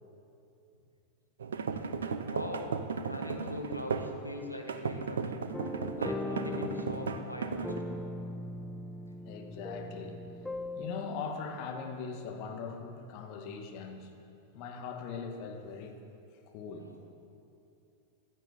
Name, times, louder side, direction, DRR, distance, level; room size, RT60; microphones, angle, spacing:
sound 1, 1.4-4.2 4.7-7.8, right 5 dB, 65° right, 0.9 m, -35 dB
voice 1, 2.2-2.7 3.0-5.4 6.0-7.7 16.8-17.0, left 1 dB, 90° left, 1 dB, 1.6 m, -41 dB
sound 2, 5.5-11.0, left 2 dB, 5° left, 0.7 m, -39 dB
voice 2, 9.2-10.2 10.8-14.1 14.5-16.0 16.5-17.1, left 5 dB, 45° left, 3 dB, 2.0 m, -41 dB
16.0 x 12.0 x 7.2 m, 2.7 s
figure-of-eight pair, 90°, 0 cm